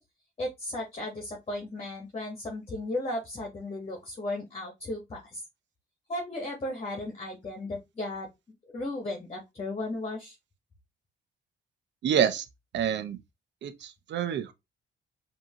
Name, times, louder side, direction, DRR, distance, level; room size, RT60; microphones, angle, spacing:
voice 1, 0.4-5.4 6.1-8.3 8.7-10.3, left 1 dB, 30° left, 1.4 m, -35 dB
voice 2, 12.0-12.5 12.7-13.2 13.6-14.5, right 8 dB, 65° right, 0.7 m, -27 dB
5.2 x 2.9 x 2.9 m
cardioid pair, 90°, 20 cm